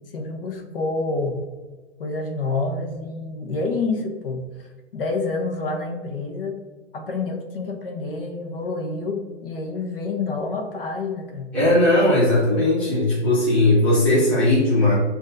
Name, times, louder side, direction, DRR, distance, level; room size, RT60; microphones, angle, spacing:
voice 1, 0.1-1.4 2.0-6.7 6.9-11.6, left 3 dB, 55° left, 3 dB, 0.8 m, -28 dB
voice 2, 11.5-14.9, left 1 dB, 5° left, -9 dB, 0.7 m, -18 dB
7.4 x 2.6 x 2.6 m, 1.3 s
hypercardioid pair, 160°, 35 cm